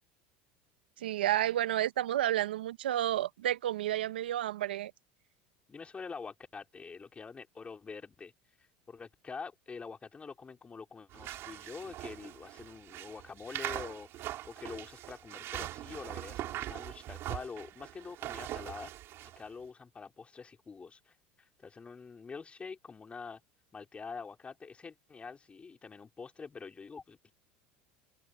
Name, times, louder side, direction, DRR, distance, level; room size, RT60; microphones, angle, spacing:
voice 1, 1.0-4.9, right 13 dB, 90° right, 1.0 m, -31 dB
voice 2, 5.7-8.3 8.9-18.9 19.4-23.4 23.7-27.3, left 5 dB, 20° left, 3.0 m, -46 dB
sound 1, 11.1-19.4, right 14 dB, 50° right, 5.0 m, -42 dB
hypercardioid pair, 95°, 5 cm